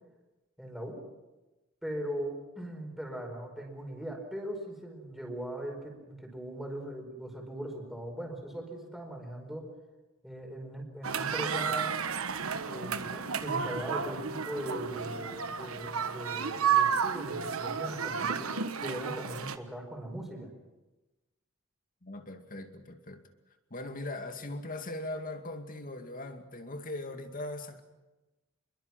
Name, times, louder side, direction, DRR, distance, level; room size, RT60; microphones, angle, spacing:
voice 1, 0.6-1.0 1.8-9.7 10.2-12.0 12.7-18.5 18.8-20.5, right 1 dB, ahead, 1 dB, 5.2 m, -39 dB
sound 1, 11.0-19.6, right 7 dB, 85° right, 1.3 m, -32 dB
voice 2, 22.0-23.2 23.7-27.8, left 2 dB, 40° left, 6 dB, 2.3 m, -40 dB
27.5 x 22.5 x 6.1 m, 1.1 s
head